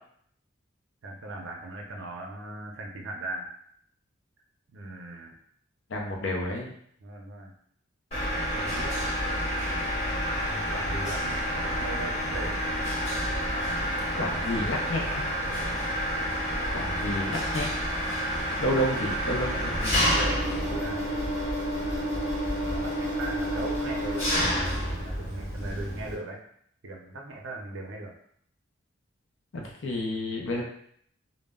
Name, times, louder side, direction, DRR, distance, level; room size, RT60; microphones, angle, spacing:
voice 1, 1.0-3.5 4.7-5.4 7.0-7.5 8.5-9.0 10.4-11.4 11.8-12.6 15.5-15.7 20.0-26.4 26.8-28.1, right 2 dB, 70° right, 0 dB, 0.5 m, -39 dB
voice 2, 5.9-6.7 14.2-15.2 16.7-17.7 18.6-20.1 29.5-30.6, left 1 dB, 65° left, 0 dB, 0.5 m, -30 dB
Mechanisms, 8.1-26.1, equal, 30° left, 1.0 m, -29 dB
2.0 x 2.0 x 3.5 m, 0.65 s
head